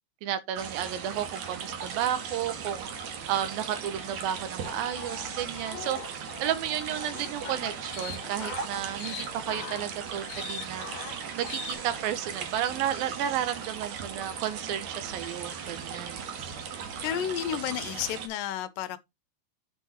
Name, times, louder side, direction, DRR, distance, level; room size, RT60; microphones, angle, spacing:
voice 1, 0.2-2.9 3.3-10.9 11.4-16.2, right 11 dB, 80° right, 2.7 m, -32 dB
sound 1, 0.6-18.3, right 6 dB, 60° right, 2.2 m, -38 dB
sound 2, 4.6-11.8, left 6 dB, 60° left, 2.2 m, -41 dB
voice 2, 17.0-19.0, left 10 dB, 80° left, 2.2 m, -31 dB
8.1 x 4.6 x 4.2 m
omnidirectional pair, 4.2 m